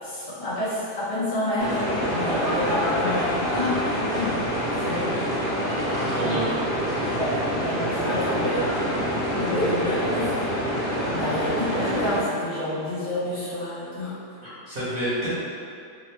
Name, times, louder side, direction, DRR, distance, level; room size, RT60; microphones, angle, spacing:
voice 1, 0.0-5.4 6.1-6.5 7.1-8.9 9.3-10.3 11.1-14.2, left 1 dB, 75° left, -12 dB, 1.8 m, -29 dB
sound 1, 1.6-12.2, equal, 5° left, 0.4 m, -26 dB
voice 2, 5.9-6.5 14.4-15.3, right 1 dB, 45° right, -13 dB, 0.8 m, -29 dB
3.8 x 2.0 x 3.2 m, 2.4 s
omnidirectional pair, 1.8 m